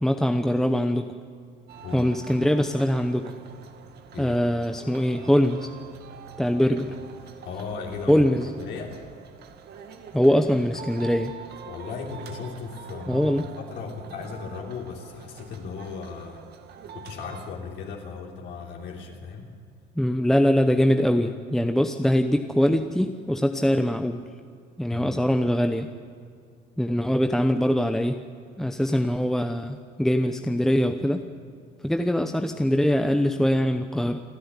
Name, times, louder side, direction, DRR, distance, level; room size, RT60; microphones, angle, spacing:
voice 1, 0.0-1.2 1.9-3.3 4.2-5.7 6.4-6.9 8.1-8.5 10.1-11.4 13.1-13.5 20.0-24.2 24.8-25.9 26.8-28.2 28.6-31.3 31.8-34.2, equal, ahead, 6 dB, 0.8 m, -22 dB
sound 1, 1.7-17.5, right 7 dB, 60° right, 1.9 m, -45 dB
voice 2, 1.8-2.1 4.1-4.4 6.6-6.8 7.5-8.3 8.6-8.9 11.6-16.4 16.9-19.5 24.9-25.2, left 5 dB, 65° left, 0 dB, 3.5 m, -36 dB
28.5 x 11.0 x 9.6 m, 2.3 s
cardioid pair, 130°, 19 cm